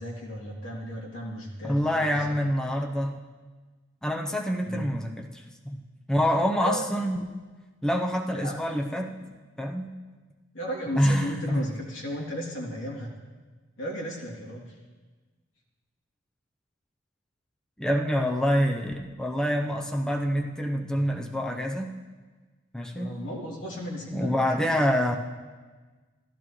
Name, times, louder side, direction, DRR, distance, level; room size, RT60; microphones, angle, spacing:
voice 1, 0.0-2.3 4.6-4.9 6.6-6.8 8.3-8.8 10.5-13.1 13.8-14.8 22.9-24.5, equal, 85° left, -3 dB, 2.8 m, -35 dB
voice 2, 1.6-3.2 4.0-5.8 6.1-7.2 7.8-9.9 11.0-11.7 17.8-21.9 22.7-23.1 24.1-25.2, equal, 5° left, 1 dB, 0.6 m, -26 dB
15.0 x 12.5 x 3.1 m, 1.3 s
head